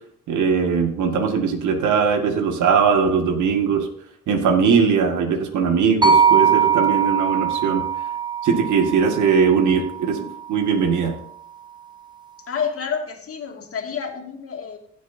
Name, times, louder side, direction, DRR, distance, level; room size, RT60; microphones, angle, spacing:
voice 1, 0.3-3.9 4.3-7.8 8.4-10.2 10.5-11.1, right 6 dB, 75° right, 5 dB, 2.0 m, -20 dB
sound 1, 6.0-10.2, right 7 dB, 15° right, 1.4 m, -21 dB
voice 2, 12.5-14.8, left 6 dB, 50° left, 1 dB, 2.3 m, -29 dB
16.0 x 7.7 x 2.7 m, 0.66 s
cardioid pair, 90°, 30 cm